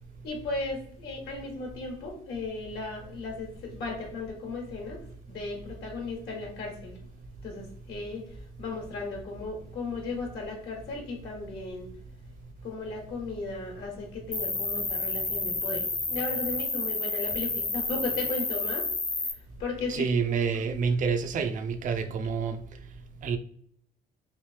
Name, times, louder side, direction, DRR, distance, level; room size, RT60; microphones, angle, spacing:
voice 1, 0.2-5.0 5.3-7.0 7.4-11.9 12.6-18.8 19.2-20.5, left 3 dB, 70° left, 1.1 m, -36 dB
Cricket, 14.3-19.3, left 3 dB, 15° left, 0.5 m, -30 dB
voice 2, 19.9-22.6 23.2-23.4, right 5 dB, 50° right, 0.5 m, -28 dB
3.1 x 2.7 x 3.2 m
cardioid pair, 110°, 17 cm